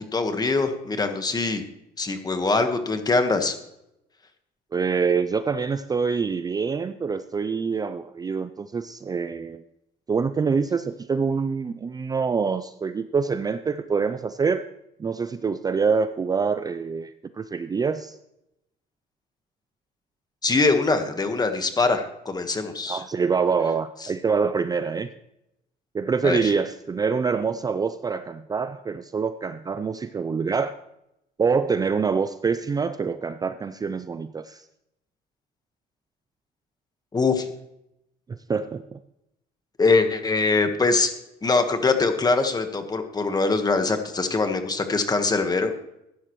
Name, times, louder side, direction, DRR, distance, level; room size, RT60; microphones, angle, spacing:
voice 1, 0.1-1.6 2.0-3.5 20.4-23.0 26.2-26.5 37.1-37.5 39.8-41.1 41.4-45.7, left 3 dB, 25° left, 7 dB, 1.4 m, -23 dB
voice 2, 4.7-9.6 10.1-14.6 15.0-18.2 22.9-25.1 25.9-30.7 31.4-34.6 38.3-39.0, right 5 dB, 20° right, 11 dB, 0.4 m, -25 dB
15.0 x 11.0 x 3.1 m, 0.84 s
cardioid pair, 110°, 17 cm